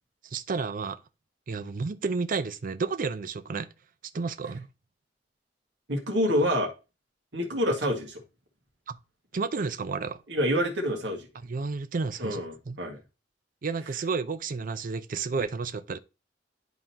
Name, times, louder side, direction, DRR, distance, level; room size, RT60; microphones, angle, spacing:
voice 1, 0.3-1.0 1.5-3.7 4.1-4.7 6.4-6.5 8.9-9.0 9.3-10.2 11.4-12.4 12.7-12.8 13.6-16.0, right 4 dB, 50° right, 0.5 m, -31 dB
voice 2, 5.9-6.7 7.3-8.2 10.3-11.3 12.2-13.0, equal, 75° right, 1.8 m, -27 dB
11.0 x 3.8 x 2.9 m
head